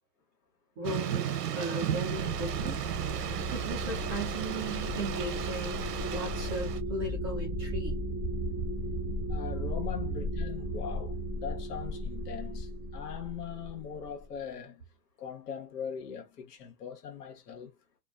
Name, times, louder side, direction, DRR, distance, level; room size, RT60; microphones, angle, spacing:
voice 1, 0.8-2.8 3.5-7.9, right 2 dB, 15° right, 0.4 m, -37 dB
Thunder / Rain, 0.8-6.8, right 9 dB, 70° right, 0.8 m, -35 dB
sound 1, 2.0-14.2, equal, 15° left, 0.9 m, -35 dB
voice 2, 9.3-14.8 15.2-17.7, left 7 dB, 70° left, 1.2 m, -40 dB
2.5 x 2.3 x 2.3 m
hypercardioid pair, 145°, 49 cm